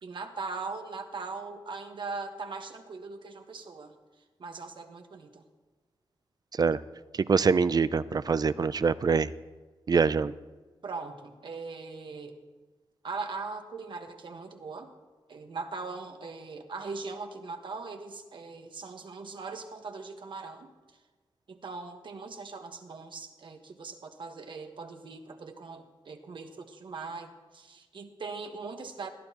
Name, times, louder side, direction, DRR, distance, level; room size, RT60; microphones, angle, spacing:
voice 1, 0.0-3.9 4.4-5.4 10.8-12.4 13.0-14.9 15.3-21.0 21.5-29.1, right 4 dB, 60° right, 5 dB, 1.4 m, -40 dB
voice 2, 7.3-9.3 9.9-10.3, right 5 dB, 45° right, 16 dB, 0.4 m, -24 dB
20.0 x 13.0 x 3.0 m, 1.3 s
cardioid pair, 75°, 9 cm